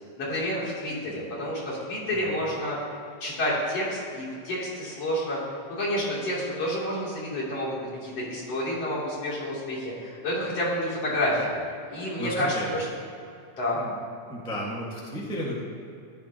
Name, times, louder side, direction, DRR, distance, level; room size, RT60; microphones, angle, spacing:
voice 1, 0.2-2.9 3.2-5.4 5.7-11.6 11.9-12.9 13.6-13.8, left 1 dB, 50° left, -7 dB, 4.1 m, -29 dB
voice 2, 12.2-12.7 13.7-14.0 14.3-15.6, equal, 5° left, -5 dB, 0.5 m, -33 dB
14.5 x 11.5 x 3.0 m, 2.5 s
omnidirectional pair, 3.6 m